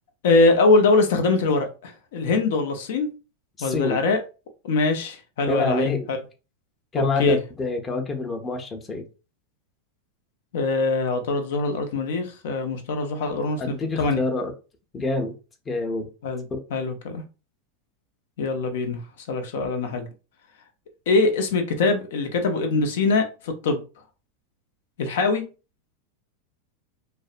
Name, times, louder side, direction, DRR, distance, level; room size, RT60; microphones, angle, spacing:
voice 1, 0.2-3.1 3.6-4.2 4.6-6.2 6.9-7.4 10.5-14.2 16.2-17.2 18.4-19.0 19.3-20.0 21.1-23.8 25.0-25.4, left 3 dB, 70° left, 0.6 m, -23 dB
voice 2, 3.6-4.0 5.5-6.0 6.9-9.0 13.6-14.5 14.9-15.3 15.7-16.0 16.5-16.6, left 3 dB, 25° left, 0.7 m, -26 dB
2.6 x 2.1 x 2.5 m
hypercardioid pair, 110°, 0 cm